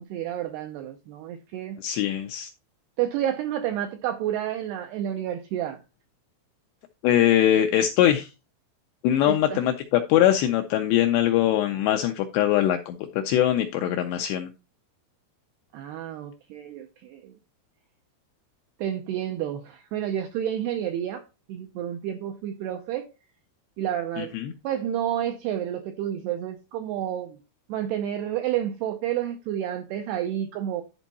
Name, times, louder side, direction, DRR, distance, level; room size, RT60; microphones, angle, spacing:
voice 1, 0.0-1.8 3.0-5.8 9.2-9.6 15.7-17.3 18.8-23.1 23.8-24.3 24.6-27.4 27.7-30.8, right 11 dB, 85° right, 2.3 m, -30 dB
voice 2, 1.8-2.5 7.0-8.3 9.0-14.5 24.2-24.5, left 11 dB, 85° left, 2.4 m, -22 dB
11.5 x 4.5 x 4.1 m
omnidirectional pair, 5.5 m